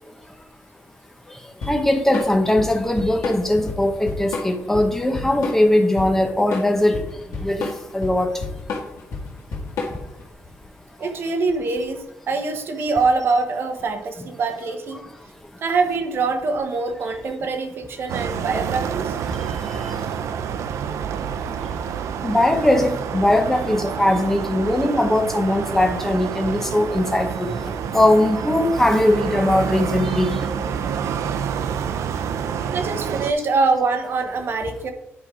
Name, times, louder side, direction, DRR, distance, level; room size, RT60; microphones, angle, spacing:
Drum kit / Drum, 1.6-10.2, left 3 dB, 85° left, 1.9 m, -30 dB
voice 1, 1.7-7.0 7.4-8.3 22.2-27.5 27.9-30.4, left 1 dB, 5° left, 4 dB, 0.8 m, -20 dB
voice 2, 11.0-15.0 15.6-19.1 32.7-34.9, right 4 dB, 50° right, 6 dB, 1.0 m, -24 dB
sound 1, 18.1-33.3, right 7 dB, 80° right, 0.5 m, -28 dB
10.0 x 3.8 x 4.9 m, 0.88 s
wide cardioid pair, 165°, 5 cm